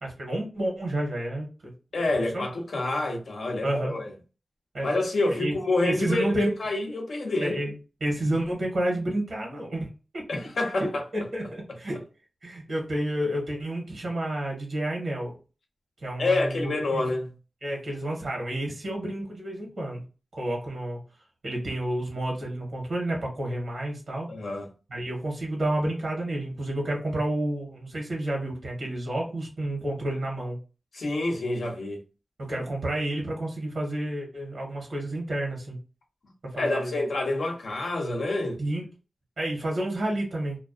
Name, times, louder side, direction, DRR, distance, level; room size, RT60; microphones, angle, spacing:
voice 1, 0.0-1.5 2.3-2.4 2.8-2.9 3.6-3.9 4.7-4.9 5.3-5.6 5.8-6.5 7.4-7.7 8.0-9.9 10.1-10.5 10.8-12.0 12.4-15.3 16.0-17.0 17.6-20.0 20.3-21.0 21.4-24.3 24.9-30.6 32.4-35.8 36.4-36.9 38.6-38.8 39.4-40.6, right 1 dB, 85° right, 0.8 m, -30 dB
voice 2, 1.9-4.1 4.8-7.5 10.3-11.0 16.2-17.3 24.3-24.7 30.9-32.0 36.5-38.6, left 2 dB, 80° left, 0.6 m, -27 dB
2.4 x 2.2 x 2.3 m
cardioid pair, 45°, 0 cm